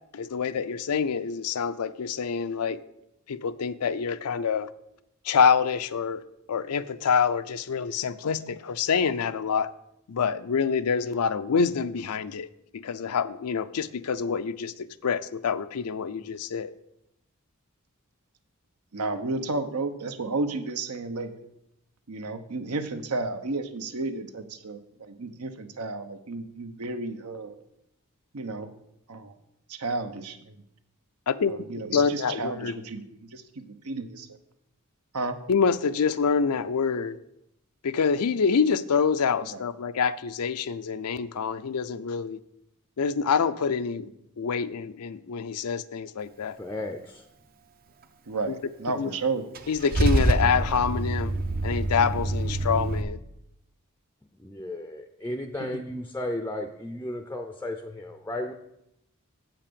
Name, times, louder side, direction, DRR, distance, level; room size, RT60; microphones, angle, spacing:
voice 1, 0.1-2.8 3.3-4.7 5.2-6.2 6.5-9.7 10.1-12.5 12.7-16.7 31.3-31.5 31.9-32.7 35.5-37.2 37.8-42.4 43.0-44.1 44.4-46.6 48.5-48.6 48.9-49.1 49.7-51.3 51.6-53.2, left 6 dB, 85° left, 12 dB, 0.5 m, -26 dB
voice 2, 18.9-21.3 22.1-27.6 28.3-28.7 29.1-29.3 29.7-30.6 31.5-34.3 35.1-35.4 39.5-39.6 48.3-49.4 55.6-55.8, right 3 dB, 80° right, 9 dB, 0.9 m, -32 dB
voice 3, 46.6-47.2 54.4-58.5, left 1 dB, 10° left, 6 dB, 0.5 m, -34 dB
Car / Engine starting / Idling, 49.5-53.0, right 2 dB, 40° right, 0.6 m, -26 dB
7.8 x 5.9 x 6.8 m, 0.81 s
head